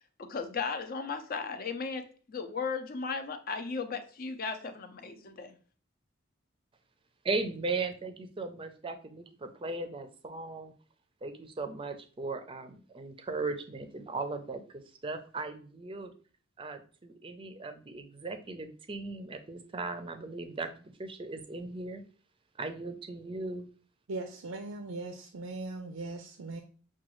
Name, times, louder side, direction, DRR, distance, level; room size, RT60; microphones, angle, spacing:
voice 1, 0.2-5.6, left 5 dB, 50° left, 0.5 m, -36 dB
voice 2, 7.2-10.7 11.2-14.6 15.0-16.1 16.6-22.0 22.6-23.7, right 3 dB, 25° right, 0.5 m, -37 dB
voice 3, 24.1-26.6, right 2 dB, 85° right, 0.5 m, -39 dB
5.8 x 2.3 x 3.0 m
head